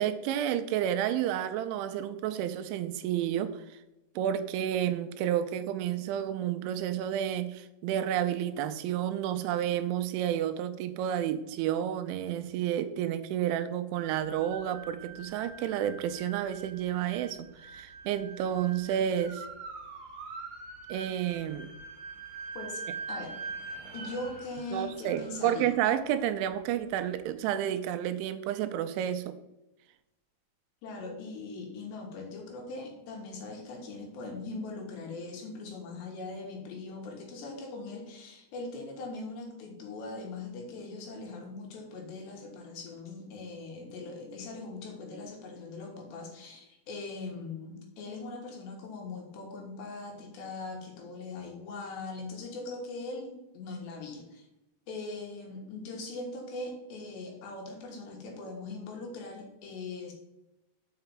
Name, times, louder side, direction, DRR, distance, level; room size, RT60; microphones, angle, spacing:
voice 1, 0.0-3.8 4.2-19.5 20.9-21.7 24.7-29.3, right 10 dB, 85° right, 10 dB, 2.9 m, -30 dB
sound 1, 14.0-27.1, right 4 dB, 50° right, 2.1 m, -44 dB
voice 2, 23.9-25.7 30.8-54.5 54.9-60.1, left 3 dB, 70° left, 1 dB, 3.6 m, -41 dB
6.8 x 5.7 x 7.2 m, 0.93 s
omnidirectional pair, 5.5 m